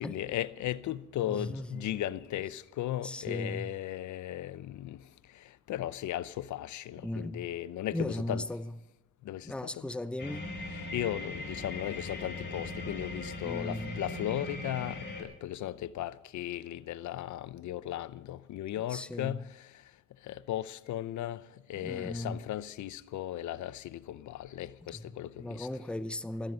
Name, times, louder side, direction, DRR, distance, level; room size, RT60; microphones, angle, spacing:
voice 1, 0.0-5.0 5.4-8.4 9.2-9.9 10.7-19.7 20.2-21.4 21.7-25.7, left 12 dB, 70° left, 0.7 m, -36 dB
voice 2, 1.3-2.0 3.0-3.7 7.0-7.5 7.9-8.7 9.4-10.5 13.4-14.0 18.9-19.4 21.8-22.4 24.9-25.0 25.4-26.5, left 1 dB, 5° left, 0.6 m, -37 dB
sound 1, 10.2-15.2, left 2 dB, 35° left, 4.8 m, -39 dB
15.5 x 14.5 x 5.4 m
cardioid pair, 90°, 30 cm